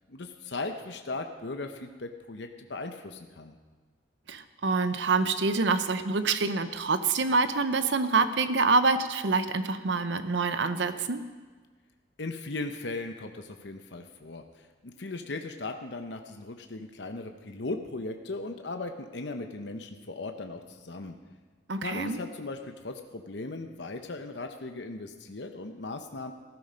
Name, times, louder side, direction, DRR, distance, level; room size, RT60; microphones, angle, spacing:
voice 1, 0.1-3.6 12.2-21.2 21.8-26.3, left 2 dB, 65° left, 6 dB, 0.9 m, -38 dB
voice 2, 4.3-11.2 21.7-22.2, right 4 dB, 65° right, 11 dB, 0.8 m, -26 dB
14.0 x 11.5 x 5.2 m, 1.4 s
head